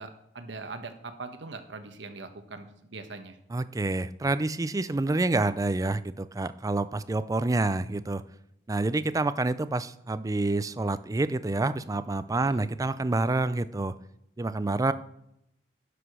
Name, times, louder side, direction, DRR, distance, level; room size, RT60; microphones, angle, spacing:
voice 1, 0.0-3.4 12.4-12.6, right 3 dB, 85° right, 8 dB, 1.1 m, -41 dB
voice 2, 3.5-8.2 8.7-13.9 14.4-14.9, right 2 dB, 20° right, 14 dB, 0.4 m, -28 dB
11.0 x 5.0 x 6.1 m, 0.77 s
head